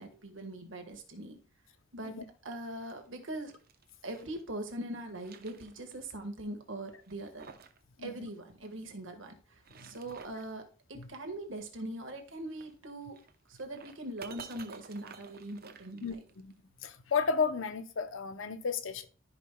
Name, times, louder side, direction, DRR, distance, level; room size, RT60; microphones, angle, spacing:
voice 1, 0.0-1.4 1.9-2.2 2.4-3.5 4.0-7.5 8.0-13.2 13.5-16.1, right 1 dB, 70° right, 1.6 m, -41 dB
sound 1, 2.6-4.4 4.9-6.1 6.4-6.5 7.0-7.8 8.1-8.2 9.4-10.5 12.4-16.5, right 5 dB, 50° right, 0.8 m, -53 dB
voice 2, 16.0-16.5 16.8-19.1, left 5 dB, 80° left, 0.7 m, -33 dB
14.0 x 5.2 x 2.3 m
head